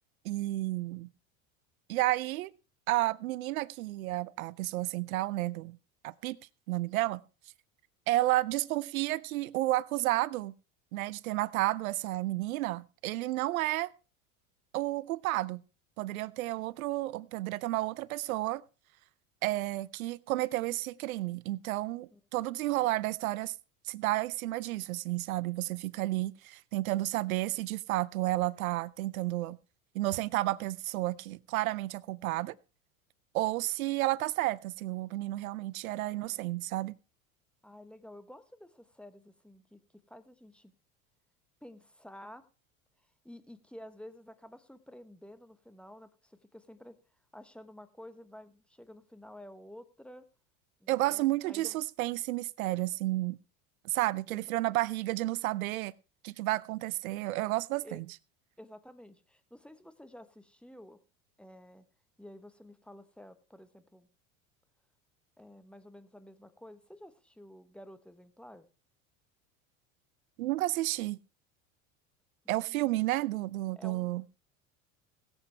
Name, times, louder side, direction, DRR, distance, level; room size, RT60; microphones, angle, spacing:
voice 1, 0.2-1.1 1.9-2.5 2.9-5.8 6.0-6.4 6.7-7.2 8.1-10.5 10.9-13.9 14.7-15.6 16.0-18.6 19.4-23.5 23.8-29.6 29.9-32.5 33.3-36.9 50.9-53.4 53.8-55.9 56.2-58.1 70.4-71.2 72.5-74.2, right 17 dB, 85° right, 0.5 m, -31 dB
voice 2, 36.1-36.4 37.6-39.8 40.1-40.7 41.6-42.4 43.2-47.0 47.3-50.2 50.8-51.8 54.3-54.8 57.8-58.0 58.6-61.0 61.4-61.9 62.2-64.1 65.4-68.7 72.4-73.0 73.8-74.1, left 1 dB, 5° left, 1.1 m, -51 dB
20.5 x 8.0 x 3.3 m
hypercardioid pair, 85°, 41 cm